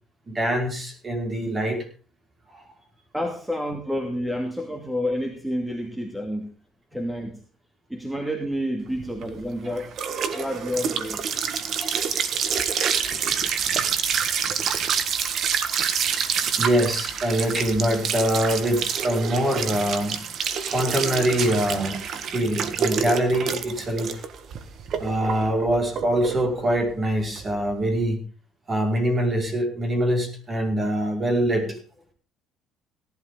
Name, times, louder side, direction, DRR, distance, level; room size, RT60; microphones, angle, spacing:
voice 1, 0.3-1.8 2.5-2.6 10.3-10.4 11.8-12.0 16.6-20.2 20.7-24.2 25.0-28.2 28.7-31.8, equal, 30° right, 2 dB, 5.2 m, -24 dB
voice 2, 3.1-6.5 6.9-7.4 7.9-9.9 10.3-11.3 20.5-20.7 27.4-27.6, equal, 5° right, 3 dB, 2.4 m, -29 dB
sound 1, 9.0-28.0, right 7 dB, 55° right, 1.6 m, -27 dB
17.5 x 12.0 x 3.8 m, 0.35 s
cardioid pair, 105°, 0 cm